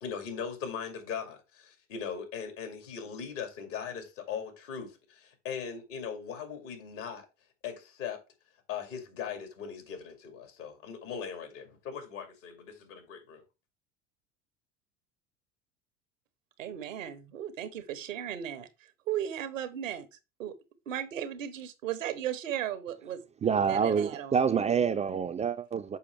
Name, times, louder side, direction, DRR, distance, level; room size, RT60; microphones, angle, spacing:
voice 1, 0.0-7.2 7.6-8.2 8.7-13.4, left 7 dB, 75° left, 2.5 m, -39 dB
voice 2, 16.6-20.1 20.4-20.5 20.9-23.2 23.7-24.4, right 10 dB, 90° right, 1.0 m, -36 dB
voice 3, 23.4-26.0, right 7 dB, 20° right, 0.3 m, -27 dB
6.9 x 4.9 x 3.3 m
hypercardioid pair, 85°, 38 cm